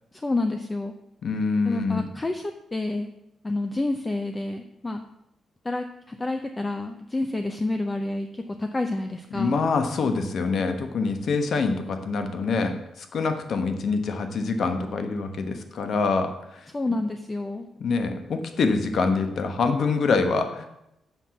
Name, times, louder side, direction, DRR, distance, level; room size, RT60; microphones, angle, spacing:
voice 1, 0.1-0.9 1.6-3.1 3.4-5.0 5.6-9.6 16.7-17.7, left 2 dB, 15° left, 6 dB, 0.5 m, -29 dB
voice 2, 1.2-2.0 9.3-16.7 17.8-20.7, left 4 dB, 55° left, 7 dB, 1.1 m, -25 dB
7.3 x 5.9 x 7.0 m, 0.85 s
cardioid pair, 150°, 0 cm